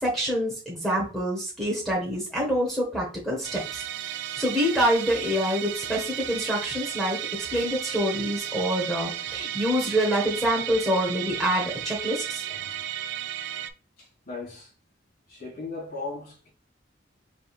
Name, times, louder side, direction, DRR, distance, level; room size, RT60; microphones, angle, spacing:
voice 1, 0.0-7.2 7.5-12.4, equal, ahead, 1.0 m, -26 dB
Musical instrument, 3.4-13.7, right 11 dB, 70° right, 0.3 m, -34 dB
voice 2, 12.5-12.8 14.0-14.7 15.3-16.5, left 3 dB, 55° left, 2.1 m, -38 dB
4.2 x 3.5 x 2.4 m
head